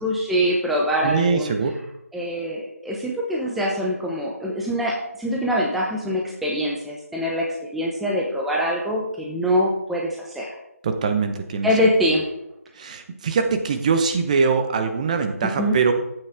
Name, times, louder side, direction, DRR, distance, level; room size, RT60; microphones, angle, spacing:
voice 1, 0.0-1.5 2.1-7.5 7.7-10.6 11.6-12.3 15.6-15.8, equal, ahead, -3 dB, 0.7 m, -24 dB
voice 2, 1.0-1.7 10.8-11.9 12.8-15.9, right 5 dB, 30° right, 7 dB, 1.0 m, -22 dB
13.5 x 8.6 x 3.6 m, 0.85 s
figure-of-eight pair, 155°, 8 cm